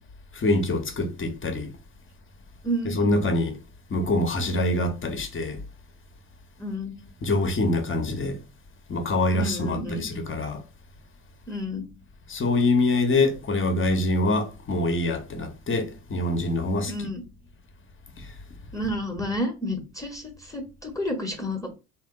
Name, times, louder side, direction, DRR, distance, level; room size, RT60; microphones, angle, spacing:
voice 1, 0.3-1.7 2.8-3.6 3.9-5.6 7.2-8.4 8.9-10.6 12.3-17.1, left 2 dB, 25° left, 1.2 m, -25 dB
voice 2, 2.6-3.0 6.6-6.9 9.3-10.0 11.5-11.8 16.9-17.2 18.7-21.7, equal, 5° left, 1.2 m, -30 dB
3.6 x 3.0 x 3.8 m
hypercardioid pair, 65°, 44 cm